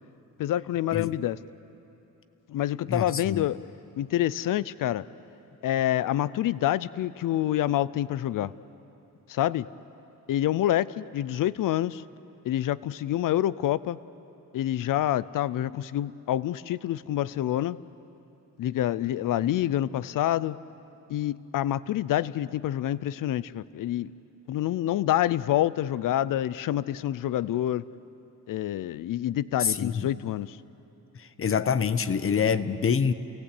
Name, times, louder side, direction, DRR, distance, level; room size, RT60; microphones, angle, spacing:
voice 1, 0.4-1.4 2.5-3.6 4.0-5.0 5.6-8.5 9.3-9.7 10.3-12.0 12.4-14.0 14.5-17.8 18.6-20.6 21.1-24.1 24.5-27.8 28.5-30.6, left 12 dB, 85° left, 18 dB, 0.6 m, -27 dB
voice 2, 2.9-3.5 29.6-30.1 31.1-33.1, left 6 dB, 45° left, 13 dB, 0.9 m, -26 dB
29.5 x 18.0 x 8.4 m, 3.0 s
cardioid pair, 110°, 31 cm